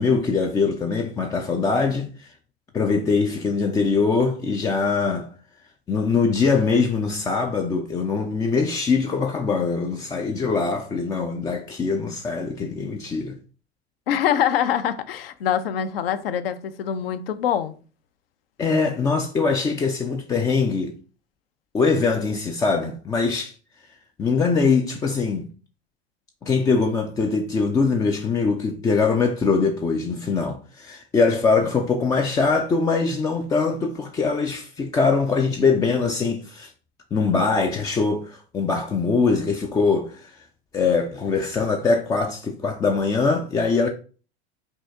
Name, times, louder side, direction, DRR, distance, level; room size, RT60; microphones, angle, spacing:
voice 1, 0.0-2.3 2.7-5.3 5.9-13.4 18.6-20.9 21.7-23.5 24.2-25.5 26.4-36.7 37.1-40.4 40.7-43.9, left 4 dB, 10° left, 0.3 m, -22 dB
voice 2, 14.1-17.7, left 9 dB, 60° left, 0.6 m, -24 dB
5.3 x 2.8 x 3.4 m
figure-of-eight pair, 80°, 32 cm